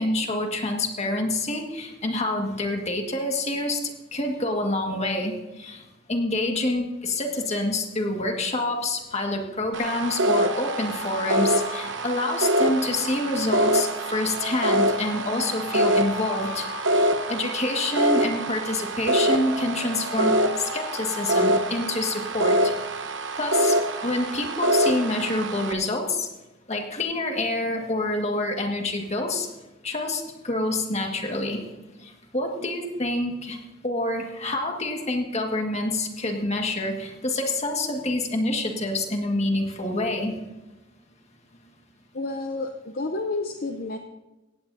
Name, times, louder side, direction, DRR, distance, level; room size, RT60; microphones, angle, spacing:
voice 1, 0.0-3.8 4.1-5.3 5.6-5.8 6.1-22.7 23.4-23.8 24.0-26.3 26.7-29.5 29.8-31.6 32.0-33.6 33.8-40.3, left 2 dB, 35° left, 2 dB, 1.8 m, -27 dB
sound 1, 9.7-25.7, right 1 dB, 70° right, 1.0 m, -25 dB
Alarm, 10.3-13.0 14.3-18.0 19.3-22.5, left 9 dB, 80° left, 3.3 m, -40 dB
voice 2, 42.1-44.0, left 2 dB, 50° left, 5 dB, 0.7 m, -30 dB
17.0 x 16.0 x 2.7 m, 1.1 s
head